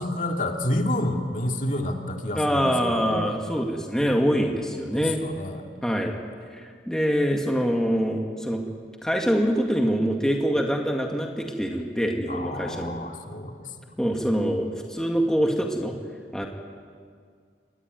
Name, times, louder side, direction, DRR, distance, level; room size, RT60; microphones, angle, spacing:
voice 1, 0.0-3.3 4.9-5.7 12.3-13.7 14.1-14.2, left 1 dB, 45° left, 2 dB, 2.5 m, -29 dB
voice 2, 2.3-5.2 5.8-6.1 6.5-8.6 9.0-13.0 14.0-15.9 16.3-16.5, equal, 5° left, 1 dB, 2.1 m, -24 dB
27.5 x 22.5 x 9.5 m, 2.1 s
head